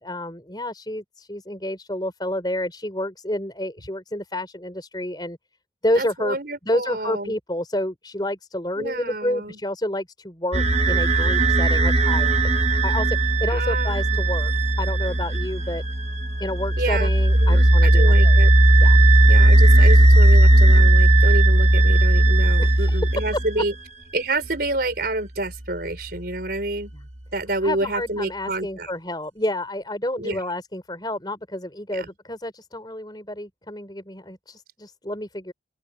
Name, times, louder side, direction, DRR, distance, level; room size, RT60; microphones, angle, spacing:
voice 1, 0.0-5.4 5.8-6.4 6.6-12.3 12.8-14.5 14.8-15.8 16.4-18.4 18.8-19.0 22.6-23.0 27.6-35.5, left 1 dB, 20° left, 5.0 m, -29 dB
voice 2, 5.9-7.4 8.8-9.6 13.5-14.2 16.8-17.1 17.4-18.5 19.3-23.7 24.1-26.9 27.3-28.9 30.2-30.4 31.9-32.1, right 2 dB, 55° right, 5.0 m, -28 dB
sound 1, 10.5-23.6, right 1 dB, 35° right, 1.3 m, -16 dB
open air
head